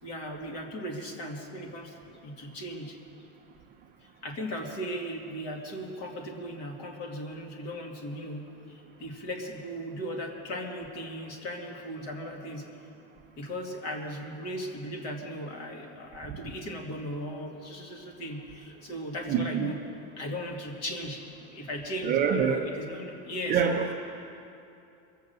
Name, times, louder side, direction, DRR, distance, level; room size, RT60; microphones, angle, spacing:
voice 1, 0.0-3.0 4.0-12.6 13.4-19.8 20.2-21.2 21.5-23.6, equal, 40° left, 2 dB, 2.1 m, -37 dB
voice 2, 19.3-19.7 22.0-22.6 23.5-23.9, right 7 dB, 20° right, 0 dB, 0.6 m, -25 dB
22.5 x 7.9 x 6.7 m, 2.7 s
supercardioid pair, 170°, 39 cm